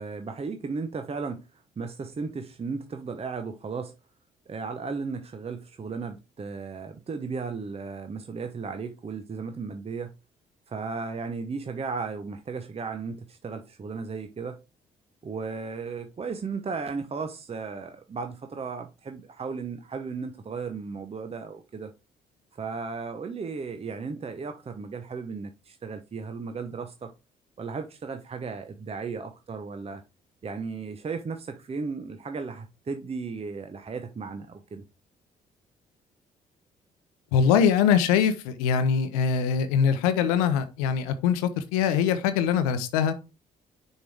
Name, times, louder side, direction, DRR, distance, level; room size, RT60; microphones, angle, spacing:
voice 1, 0.0-3.9 4.5-10.1 10.7-14.6 15.2-21.9 22.5-27.1 27.6-30.0 30.4-34.8, right 4 dB, 35° right, 0.8 m, -35 dB
voice 2, 37.3-43.1, left 7 dB, 85° left, 0.7 m, -23 dB
6.5 x 4.6 x 3.4 m
hypercardioid pair, 50°, 19 cm